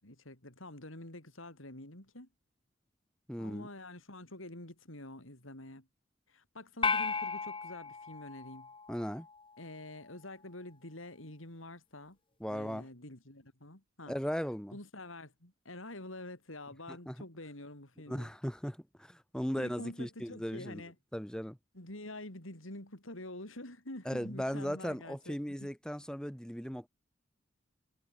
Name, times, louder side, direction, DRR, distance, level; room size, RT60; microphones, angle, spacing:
voice 1, 0.0-2.3 3.4-5.9 6.3-8.7 9.6-12.2 12.5-14.1 14.7-18.3 19.6-20.9 21.7-25.7, left 1 dB, 85° left, 6.4 m, -47 dB
voice 2, 3.3-3.7 8.9-9.3 12.4-12.9 14.1-14.8 16.9-17.2 18.1-20.8 21.1-21.6 24.0-26.9, equal, 5° left, 2.6 m, -37 dB
sound 1, 6.8-9.3, left 5 dB, 25° left, 2.1 m, -35 dB
head